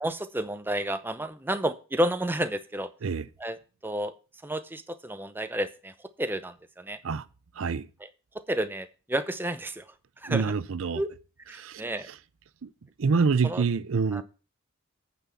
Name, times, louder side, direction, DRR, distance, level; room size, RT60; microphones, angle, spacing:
voice 1, 0.0-2.9 3.4-3.6 3.8-4.1 4.4-5.9 6.2-7.0 8.3-9.8 10.2-10.5 10.9-11.1 11.5-12.1 13.4-13.6 14.1-14.2, right 1 dB, 10° right, 0.7 m, -31 dB
voice 2, 7.5-7.9 10.3-11.0 11.5-12.2 12.6-12.7 13.0-14.2, right 5 dB, 70° right, 0.5 m, -26 dB
9.1 x 6.1 x 7.0 m
head